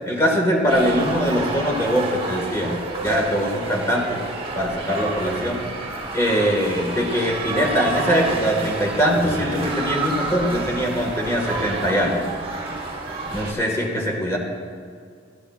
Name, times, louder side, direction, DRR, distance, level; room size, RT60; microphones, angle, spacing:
voice 1, 0.1-4.2 4.6-5.6 6.1-12.3 13.3-14.4, equal, 15° left, 0 dB, 1.7 m, -22 dB
sound 1, 0.7-13.5, right 2 dB, 30° right, 1.4 m, -29 dB
17.0 x 12.0 x 2.4 m, 2.2 s
head